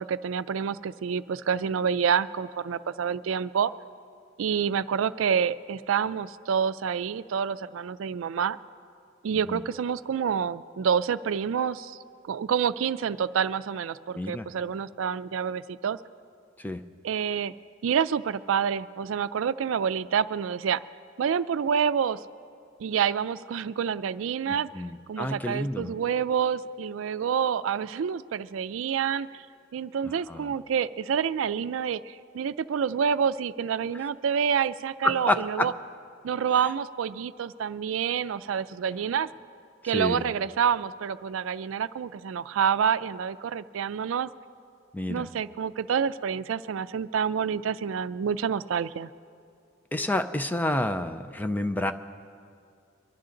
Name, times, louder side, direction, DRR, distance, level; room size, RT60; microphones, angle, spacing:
voice 1, 0.0-3.7 4.4-8.6 9.2-12.0 12.3-16.0 17.0-17.5 17.8-20.8 21.2-22.2 22.8-24.7 25.1-29.4 29.7-35.7 36.2-39.3 39.8-44.3 45.1-49.1, right 7 dB, 90° right, 16 dB, 0.4 m, -28 dB
voice 2, 14.2-14.5 16.6-16.9 24.5-25.9 30.1-30.5 35.0-35.7 39.8-40.3 44.9-45.3 49.9-51.9, left 1 dB, 10° left, 8 dB, 0.4 m, -29 dB
24.0 x 11.5 x 3.8 m, 2.4 s
head